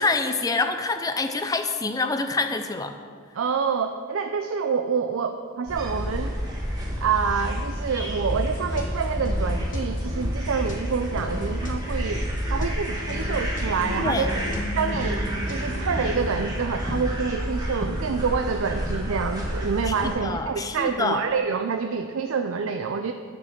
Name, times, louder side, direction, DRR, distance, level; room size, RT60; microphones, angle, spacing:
voice 1, 0.0-3.0 14.0-14.3 19.9-21.2, left 3 dB, 15° left, 7 dB, 0.4 m, -26 dB
voice 2, 3.3-6.4 7.0-14.4 14.8-23.1, right 5 dB, 85° right, 6 dB, 0.4 m, -27 dB
sound 1, 5.7-20.1, equal, 20° right, 1.5 m, -29 dB
sound 2, 8.3-16.0, left 1 dB, 40° left, 1.1 m, -37 dB
sound 3, 13.7-17.7, left 1 dB, 55° right, 2.6 m, -37 dB
10.0 x 5.3 x 6.5 m, 2.1 s
head